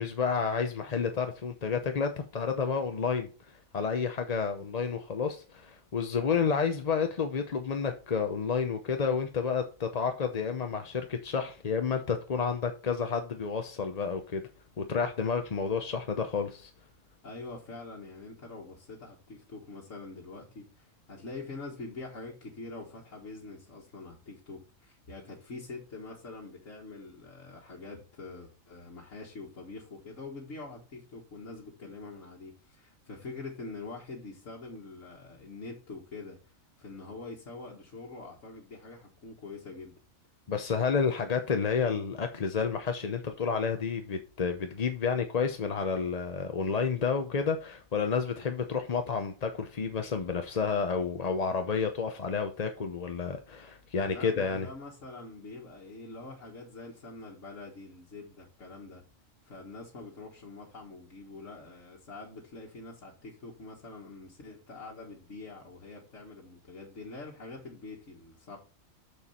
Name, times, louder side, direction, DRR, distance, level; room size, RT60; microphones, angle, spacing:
voice 1, 0.0-14.4 14.8-16.7 40.5-54.7, left 5 dB, 40° left, 0.7 m, -30 dB
voice 2, 17.2-40.0 54.0-59.0 59.4-68.6, left 3 dB, 65° left, 2.0 m, -45 dB
7.0 x 6.7 x 4.3 m
omnidirectional pair, 1.4 m